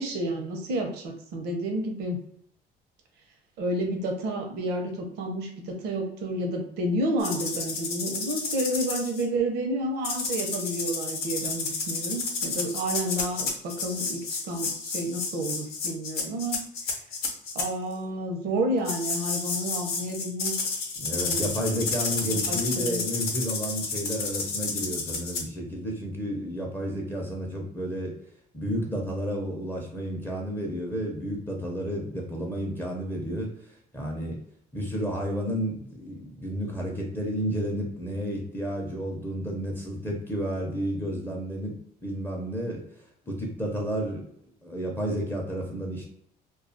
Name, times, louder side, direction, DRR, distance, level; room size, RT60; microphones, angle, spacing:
voice 1, 0.0-2.2 3.6-16.6 17.5-21.5 22.3-23.0, right 1 dB, 80° right, 2 dB, 0.7 m, -30 dB
sound 1, 7.2-9.2 10.0-17.7 18.9-25.4, left 4 dB, 75° left, 0.7 m, -31 dB
voice 2, 21.0-28.2 28.5-33.5 33.9-34.4 34.7-42.8 43.3-44.2 44.6-46.0, equal, 10° left, -1 dB, 0.5 m, -31 dB
2.3 x 2.3 x 2.6 m, 0.69 s
cardioid pair, 110°, 17 cm